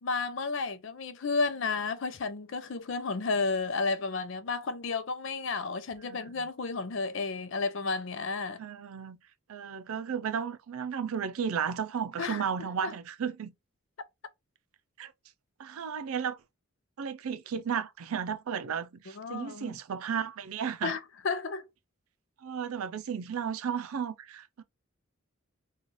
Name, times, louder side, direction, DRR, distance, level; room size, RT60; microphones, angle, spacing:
voice 1, 0.0-8.6 12.2-12.9 19.2-19.8 20.8-21.0 21.2-21.7, left 4 dB, 60° left, 0.5 m, -32 dB
voice 2, 8.6-9.2 9.5-13.5 15.0-15.1 15.6-16.4 17.0-20.9 22.4-24.6, right 7 dB, 85° right, 0.4 m, -34 dB
3.1 x 2.4 x 4.0 m
head